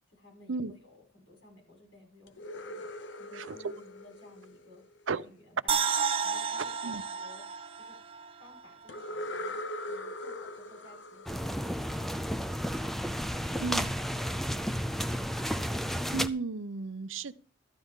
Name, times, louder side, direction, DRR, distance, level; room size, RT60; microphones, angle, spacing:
voice 1, 0.1-2.9 3.2-5.8 6.2-7.5 7.7-8.0 8.4-12.9, left 2 dB, 80° left, 6.5 m, -57 dB
sound 1, 2.3-5.2 8.9-12.6, left 1 dB, 65° left, 0.8 m, -41 dB
sound 2, 5.7-8.9 9.2-9.3, right 6 dB, 30° right, 0.8 m, -32 dB
sound 3, 11.3-16.3, equal, ahead, 0.4 m, -32 dB
voice 2, 16.1-17.3, right 4 dB, 75° right, 0.7 m, -34 dB
14.0 x 11.5 x 3.7 m
head